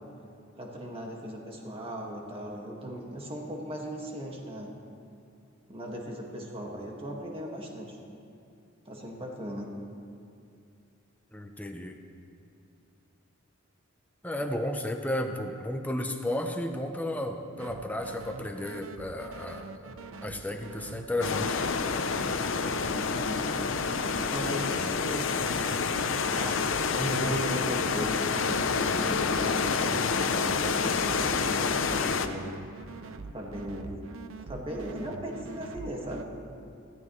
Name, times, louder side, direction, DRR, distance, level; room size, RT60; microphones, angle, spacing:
voice 1, 0.5-4.7 5.7-8.0 8.8-9.7 14.4-14.5 22.9-23.8 24.1-25.3 26.2-32.5 33.3-34.1 34.4-36.3, equal, 30° right, -1 dB, 1.8 m, -37 dB
voice 2, 11.3-12.0 14.2-19.9 20.2-21.6, left 1 dB, 10° left, 4 dB, 0.7 m, -33 dB
sound 1, 17.6-36.2, right 3 dB, 85° right, 0.6 m, -44 dB
sound 2, 21.2-32.3, left 5 dB, 65° left, 0.7 m, -28 dB
20.0 x 14.5 x 3.2 m, 2.6 s
head